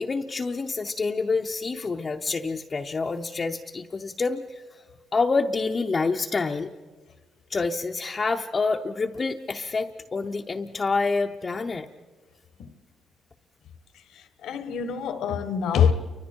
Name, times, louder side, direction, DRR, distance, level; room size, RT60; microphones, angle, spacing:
voice 1, 0.0-4.8 5.1-6.7 7.5-11.9, left 4 dB, 35° left, 0.8 m, -27 dB
voice 2, 14.1-15.9, left 7 dB, 80° left, 1.4 m, -25 dB
29.0 x 24.5 x 4.6 m
cardioid pair, 90°, 0 cm